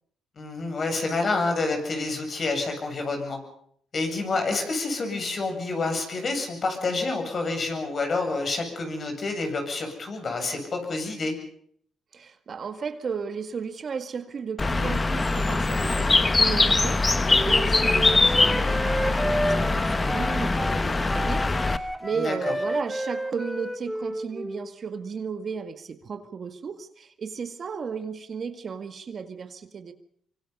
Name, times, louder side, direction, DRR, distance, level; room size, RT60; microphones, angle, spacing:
voice 1, 0.4-3.4 3.9-11.3 22.1-22.3, left 3 dB, 45° left, 4 dB, 7.7 m, -28 dB
voice 2, 12.1-29.9, right 6 dB, 45° right, 8 dB, 1.9 m, -34 dB
Bird, 14.6-21.8, left 3 dB, 25° left, 1.2 m, -22 dB
Wind instrument woodwind instrument, 17.3-24.7, equal, ahead, 1.4 m, -31 dB
25.0 x 24.5 x 5.5 m, 0.63 s
cardioid pair, 90°, 0 cm